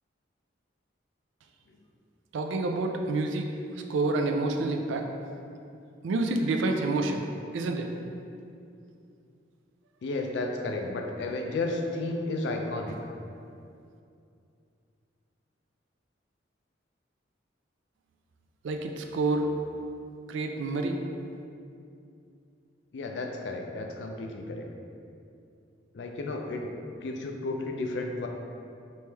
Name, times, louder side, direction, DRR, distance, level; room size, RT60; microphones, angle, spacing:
voice 1, 2.3-3.5 3.9-5.1 6.0-7.2 7.5-7.9 18.6-19.5 20.3-21.0, right 2 dB, 80° right, 4 dB, 0.3 m, -28 dB
voice 2, 10.0-13.0 22.9-24.7 25.9-26.7 27.0-28.3, left 2 dB, 65° left, 3 dB, 0.4 m, -32 dB
3.2 x 3.0 x 3.3 m, 2.5 s
head